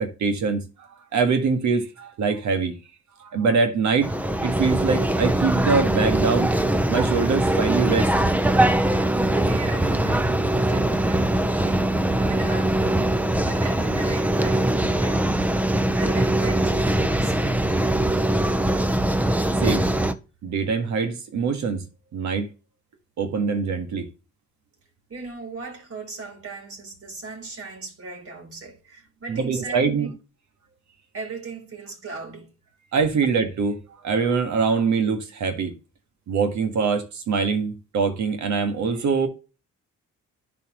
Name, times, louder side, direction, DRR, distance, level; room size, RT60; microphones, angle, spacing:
voice 1, 0.0-2.7 3.2-4.1 4.4-6.5 6.9-8.2 19.6-19.9 20.4-21.9 22.1-22.5 23.2-24.1 29.3-30.1 32.9-35.7 36.3-39.3, right 5 dB, 70° right, 1.6 m, -23 dB
sound 1, 4.0-20.1, right 1 dB, 5° right, 0.7 m, -22 dB
voice 2, 9.2-15.4 15.9-17.8 25.1-30.1 31.1-32.5, right 4 dB, 50° right, 4.2 m, -38 dB
11.0 x 4.3 x 3.0 m
cardioid pair, 90°, 30 cm